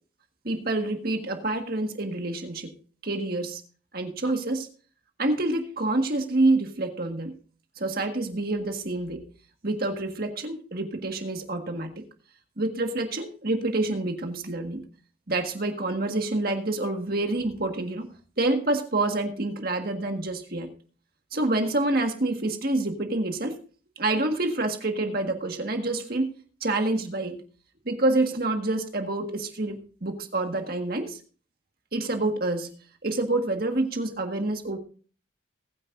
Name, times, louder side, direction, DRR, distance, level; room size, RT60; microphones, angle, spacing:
voice 1, 0.4-2.7 3.0-3.6 3.9-4.7 5.2-7.3 7.8-9.2 9.6-11.9 12.6-14.8 15.3-18.1 18.4-20.7 21.3-23.6 24.0-26.3 26.6-27.4 27.9-31.2 31.9-32.7 33.0-34.8, right 2 dB, 50° right, 4 dB, 1.7 m, -27 dB
20.5 x 9.8 x 2.6 m, 0.39 s
head